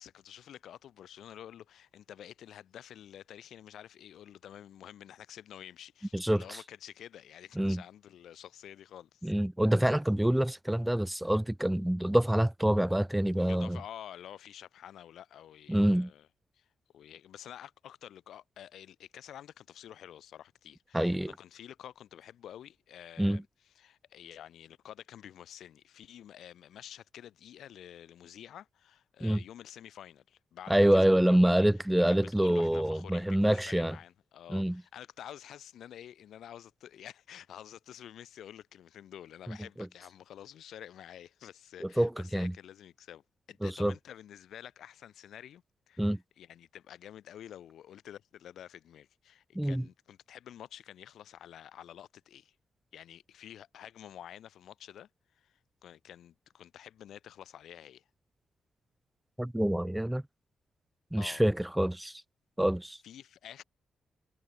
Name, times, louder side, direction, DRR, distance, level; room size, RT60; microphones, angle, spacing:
voice 1, 0.0-9.3 13.4-16.3 16.5-16.7 16.9-31.5 32.1-52.5 52.9-55.1 55.3-58.0 61.2-61.4 63.0-63.6, left 10 dB, 80° left, 4.0 m, -49 dB
voice 2, 6.1-6.6 7.6-7.8 9.2-13.8 15.7-16.1 20.9-21.3 23.2-23.4 29.2-29.4 30.7-34.0 34.5-34.8 41.8-42.5 43.6-43.9 46.0-46.2 49.6-49.8 59.4-60.2 61.1-62.2 62.6-63.0, right 1 dB, 5° right, 0.5 m, -26 dB
cardioid pair, 80°, 0 cm